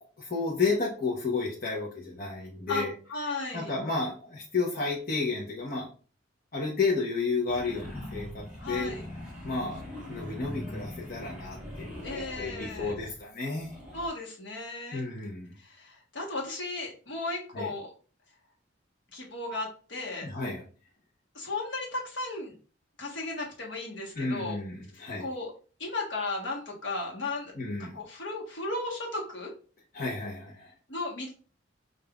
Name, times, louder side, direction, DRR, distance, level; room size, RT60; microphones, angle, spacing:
voice 1, 0.2-2.9 3.5-5.9 6.5-8.9 9.4-9.8 10.1-13.8 14.9-15.5 17.5-17.7 20.2-20.6 24.1-25.3 27.6-28.0 29.9-30.7, left 3 dB, 50° left, -4 dB, 0.9 m, -32 dB
voice 2, 2.7-3.7 8.6-9.0 12.0-12.9 13.9-15.0 15.6-17.9 19.1-20.3 21.3-22.6 23.0-24.6 24.9-25.5 25.8-27.5 27.8-29.5 30.9-31.3, left 2 dB, 65° left, -2 dB, 1.2 m, -35 dB
sound 1, 7.5-13.2 13.5-14.1, left 1 dB, 5° right, 1.6 m, -41 dB
5.2 x 2.6 x 2.3 m, 0.38 s
head